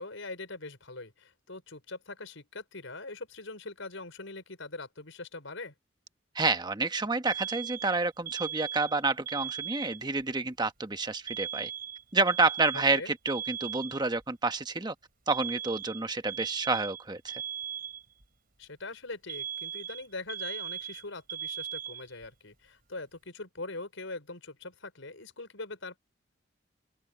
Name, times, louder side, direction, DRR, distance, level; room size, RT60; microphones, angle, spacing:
voice 1, 0.0-5.7 12.7-13.1 18.6-26.0, left 3 dB, 75° left, 5.1 m, -42 dB
voice 2, 6.3-11.7 12.1-14.9 15.3-17.4, right 3 dB, 20° right, 1.1 m, -29 dB
Alarm, 7.3-10.2 11.3-14.2 15.3-18.3 19.3-22.3, right 9 dB, 50° right, 4.9 m, -38 dB
open air
head